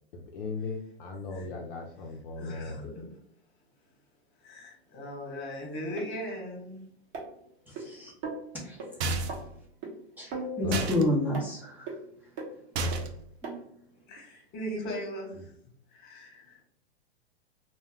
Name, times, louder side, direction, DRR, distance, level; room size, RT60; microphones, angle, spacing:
voice 1, 0.1-2.9 10.6-10.9 14.1-14.2 15.3-15.5, left 3 dB, 55° left, 1 dB, 0.6 m, -37 dB
voice 2, 2.4-3.1 4.4-6.8 14.1-15.3 15.9-16.6, equal, 30° left, 0 dB, 1.1 m, -38 dB
sound 1, 6.0-6.1 7.1-7.8 8.2-8.4 8.8-8.9 9.3-9.4 9.8-9.9 10.3-10.9 11.3-11.5 11.9-12.0 12.4-12.5 12.9-13.0 13.4-13.5 14.2-14.3, right 2 dB, 35° right, 0.9 m, -37 dB
voice 3, 7.7-8.1 8.5-8.8 10.2-11.9 13.4-13.6, left 1 dB, 5° right, -6 dB, 0.7 m, -30 dB
sound 2, 9.0-9.5 10.7-11.0 12.8-13.3, right 3 dB, 75° right, 0.5 m, -31 dB
2.2 x 2.2 x 3.5 m, 0.68 s
hypercardioid pair, 120°, 32 cm